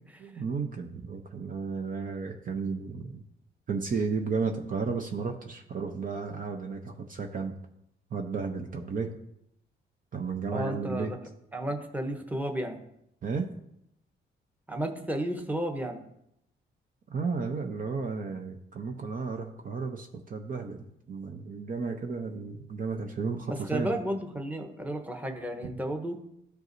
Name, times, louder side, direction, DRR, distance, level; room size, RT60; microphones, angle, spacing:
voice 1, 0.2-3.2 3.7-7.5 8.1-9.1 10.1-11.1 13.2-13.5 17.1-23.9, right 5 dB, 45° right, 4 dB, 0.8 m, -33 dB
voice 2, 10.5-11.2 11.5-12.8 14.7-16.0 23.7-26.2, right 1 dB, 10° right, 4 dB, 1.0 m, -33 dB
13.0 x 4.6 x 2.7 m, 0.77 s
cardioid pair, 90°, 20 cm